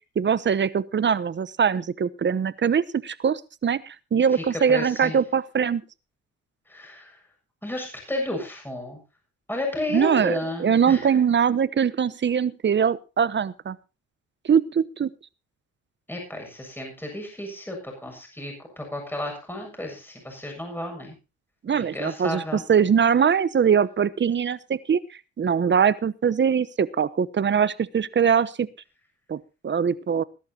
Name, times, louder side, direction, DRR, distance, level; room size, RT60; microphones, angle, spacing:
voice 1, 0.2-5.8 9.9-13.8 14.4-15.1 21.6-25.0 25.4-28.7 29.3-29.4 29.6-30.2, right 7 dB, 40° right, 18 dB, 1.0 m, -22 dB
voice 2, 4.3-5.2 6.7-7.2 7.6-9.0 9.5-11.0 16.1-21.1 21.7-22.6, left 1 dB, 5° left, 2 dB, 7.4 m, -32 dB
21.0 x 11.5 x 2.9 m, 0.30 s
cardioid pair, 90°, 30 cm